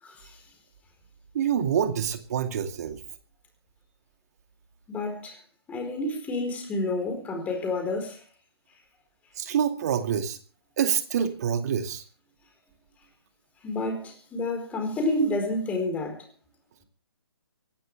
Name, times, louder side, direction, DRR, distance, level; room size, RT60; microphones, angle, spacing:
voice 1, 0.0-0.4 4.9-5.4 5.7-8.2 13.6-16.2, left 2 dB, 10° left, 4.4 m, -29 dB
voice 2, 1.3-3.0 9.4-10.4 10.8-12.0, right 8 dB, 40° right, 2.3 m, -26 dB
26.5 x 12.5 x 3.4 m
figure-of-eight pair, 140°, 13 cm